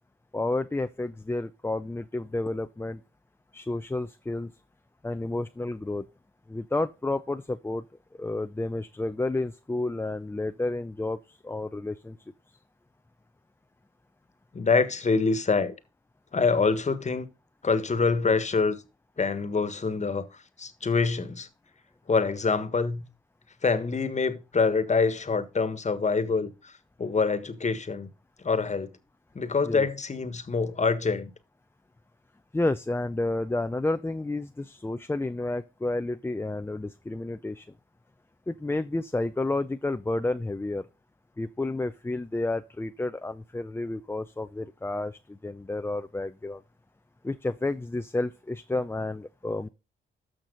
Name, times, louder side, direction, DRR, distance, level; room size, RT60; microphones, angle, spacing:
voice 1, 0.3-3.0 3.5-4.5 5.0-6.1 6.5-7.8 8.2-12.2 29.6-29.9 32.5-37.7 38.5-40.8 41.4-46.6 47.2-49.7, left 2 dB, 10° left, 0.5 m, -30 dB
voice 2, 14.5-15.7 16.3-17.3 17.6-18.8 19.2-20.3 20.6-21.5 22.1-23.1 23.6-26.7 27.0-28.1 28.4-28.9 29.3-31.3, left 4 dB, 35° left, 1.5 m, -25 dB
13.0 x 6.0 x 3.9 m
supercardioid pair, 60°, 21 cm